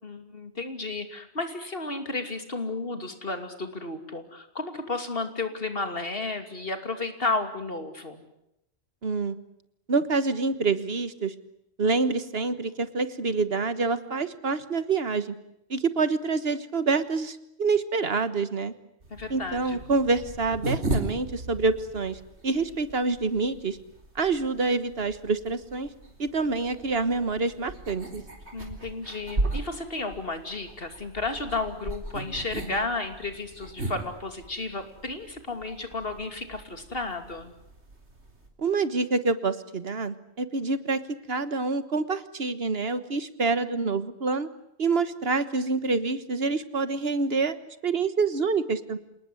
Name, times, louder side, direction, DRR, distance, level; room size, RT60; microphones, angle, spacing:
voice 1, 0.0-8.2 19.1-19.8 28.5-37.5, left 3 dB, 60° left, 7 dB, 3.0 m, -33 dB
voice 2, 9.0-9.4 9.9-11.3 11.8-15.3 15.7-18.7 19.3-23.8 24.1-25.9 26.2-28.2 38.6-44.5 44.8-47.6 47.8-49.0, right 4 dB, 65° right, 13 dB, 1.6 m, -27 dB
sound 1, 19.0-38.5, right 2 dB, 85° right, 4.1 m, -37 dB
28.0 x 19.0 x 9.7 m, 0.81 s
omnidirectional pair, 1.1 m